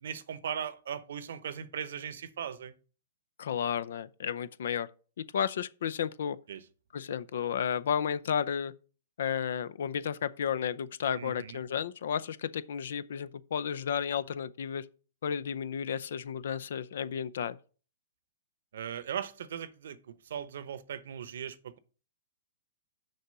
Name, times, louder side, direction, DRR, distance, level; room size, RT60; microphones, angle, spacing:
voice 1, 0.0-2.7 6.5-6.6 11.1-11.6 18.7-21.8, right 8 dB, 70° right, 0.8 m, -38 dB
voice 2, 3.4-4.9 5.2-6.4 6.9-8.7 9.2-14.9 15.2-17.6, left 8 dB, 70° left, 0.6 m, -32 dB
6.5 x 4.8 x 6.7 m
hypercardioid pair, 130°, 0 cm